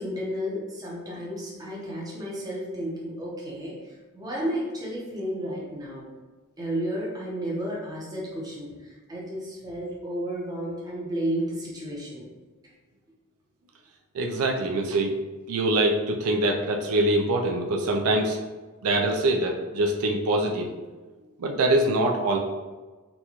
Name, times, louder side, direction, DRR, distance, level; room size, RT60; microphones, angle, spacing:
voice 1, 0.0-6.1 6.6-12.3, equal, 15° right, -5 dB, 0.7 m, -32 dB
voice 2, 14.1-15.2 15.5-18.4 18.8-20.7 21.4-22.4, right 1 dB, 75° right, 1 dB, 0.4 m, -24 dB
4.0 x 2.3 x 2.9 m, 1.3 s
head